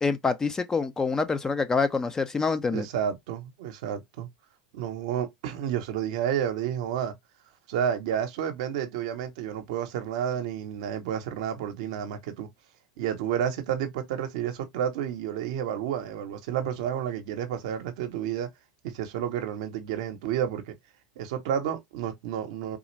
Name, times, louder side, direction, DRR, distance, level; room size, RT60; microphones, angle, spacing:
voice 1, 0.0-2.9, left 4 dB, 15° left, 0.6 m, -26 dB
voice 2, 2.7-4.3 4.7-7.1 7.7-12.5 13.0-18.5 18.8-20.8 21.2-22.8, right 9 dB, 70° right, 0.8 m, -30 dB
3.7 x 2.4 x 3.1 m
hypercardioid pair, 100°, 3 cm